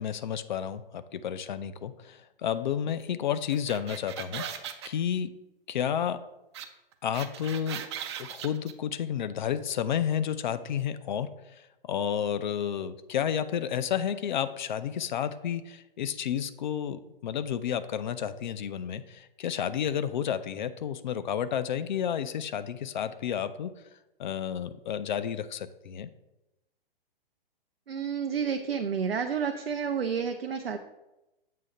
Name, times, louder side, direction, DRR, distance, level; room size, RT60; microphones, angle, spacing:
voice 1, 0.0-5.3 5.7-6.2 7.0-7.8 8.2-23.7 24.2-26.1, left 9 dB, 55° left, 13 dB, 0.5 m, -31 dB
sound 1, 3.5-4.9 6.5-6.7 6.9-8.7, right 9 dB, 30° right, 0.4 m, -38 dB
voice 2, 27.9-30.8, right 6 dB, 80° right, 5 dB, 0.5 m, -30 dB
7.5 x 2.7 x 5.3 m, 0.97 s
figure-of-eight pair, 115°, 29 cm